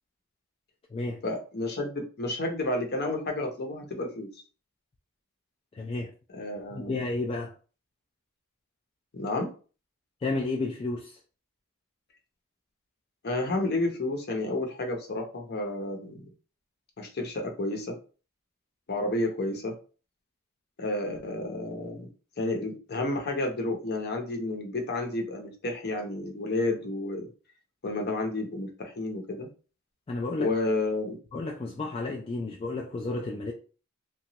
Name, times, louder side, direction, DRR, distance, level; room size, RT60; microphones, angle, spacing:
voice 1, 1.2-4.3 6.3-7.0 9.1-9.5 13.2-16.2 17.0-17.9 18.9-19.7 20.8-22.1 22.4-27.3 27.8-29.5 30.4-31.2, left 2 dB, 50° left, 0.7 m, -31 dB
voice 2, 5.7-6.1 6.7-7.5 10.2-11.2 30.1-30.5 31.3-33.5, left 2 dB, 25° left, 0.3 m, -32 dB
2.9 x 2.3 x 2.8 m
head